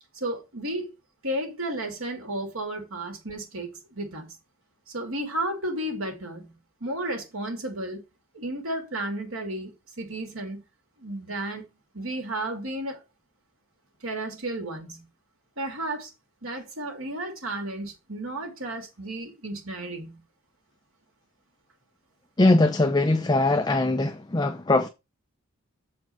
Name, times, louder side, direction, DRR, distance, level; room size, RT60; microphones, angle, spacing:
voice 1, 0.1-0.9 1.2-4.3 4.9-8.0 8.3-10.6 11.0-11.7 11.9-13.0 14.0-15.0 15.6-16.1 16.4-20.2, right 1 dB, 75° right, 2.6 m, -33 dB
voice 2, 22.4-24.9, left 2 dB, 20° left, 0.5 m, -21 dB
7.2 x 4.6 x 5.8 m
head